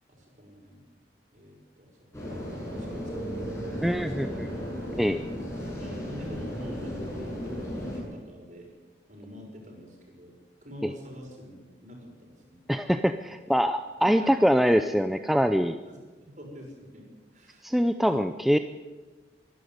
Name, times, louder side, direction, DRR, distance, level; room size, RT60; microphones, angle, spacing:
voice 1, 0.1-0.8 1.3-2.2 2.8-3.3 4.0-4.5 5.7-8.7 9.1-10.3 10.6-12.7 14.0-14.3 15.9-17.1 17.3-17.6, equal, 45° right, 1 dB, 6.3 m, -46 dB
sound 1, 2.1-8.0, equal, 15° left, 7.7 m, -35 dB
voice 2, 3.8-4.5 5.0-5.2 10.8-10.9 12.7-15.8 17.6-18.6, equal, ahead, 8 dB, 0.5 m, -24 dB
24.0 x 12.0 x 9.5 m, 1.3 s
head